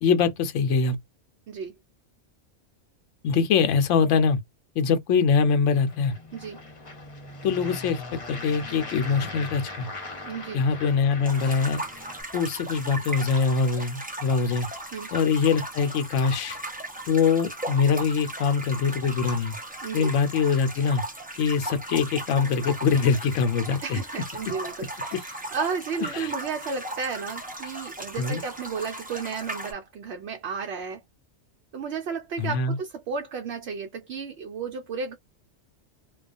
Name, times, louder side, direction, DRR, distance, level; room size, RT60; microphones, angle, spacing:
voice 1, 0.0-1.0 3.2-4.4 4.8-6.1 7.4-9.9 10.5-11.8 12.3-14.7 15.1-16.6 17.1-19.6 19.9-21.0 21.4-24.0 26.1-26.3 28.2-28.4 32.4-32.8, left 5 dB, 80° left, 0.9 m, -23 dB
sound 1, 5.6-12.2, left 2 dB, 30° left, 0.8 m, -40 dB
voice 2, 10.3-10.6 14.9-15.1 19.8-20.1 23.8-31.0 31.7-35.1, right 5 dB, 65° right, 0.8 m, -33 dB
sound 2, 11.2-29.7, right 1 dB, 15° right, 0.3 m, -37 dB
2.3 x 2.3 x 2.4 m
omnidirectional pair, 1.3 m